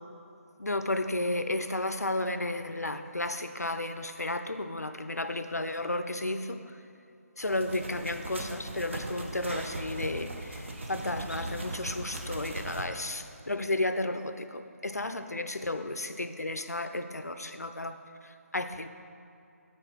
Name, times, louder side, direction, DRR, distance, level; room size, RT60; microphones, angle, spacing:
voice 1, 0.6-6.8 7.4-18.9, left 2 dB, 85° left, 9 dB, 0.4 m, -33 dB
sound 1, 7.4-12.9, right 2 dB, 50° right, 0.7 m, -39 dB
5.8 x 3.9 x 5.6 m, 2.6 s
figure-of-eight pair, 150°, 8 cm